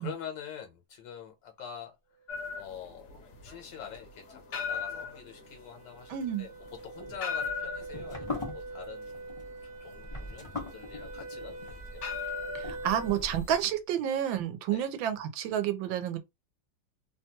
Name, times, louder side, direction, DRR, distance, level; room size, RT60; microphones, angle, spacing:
voice 1, 0.0-1.9 2.5-3.1 3.4-6.5 6.8-10.5 10.7-12.0 14.7-14.9, left 8 dB, 80° left, 1.4 m, -45 dB
sound 1, 2.3-13.6, left 6 dB, 60° left, 0.7 m, -39 dB
sound 2, 3.4-13.3, right 3 dB, 60° right, 1.3 m, -45 dB
voice 2, 6.1-6.4 12.5-16.2, right 10 dB, 90° right, 1.4 m, -30 dB
sound 3, 6.7-13.7, left 2 dB, 25° left, 0.6 m, -42 dB
3.2 x 2.3 x 2.8 m
omnidirectional pair, 2.1 m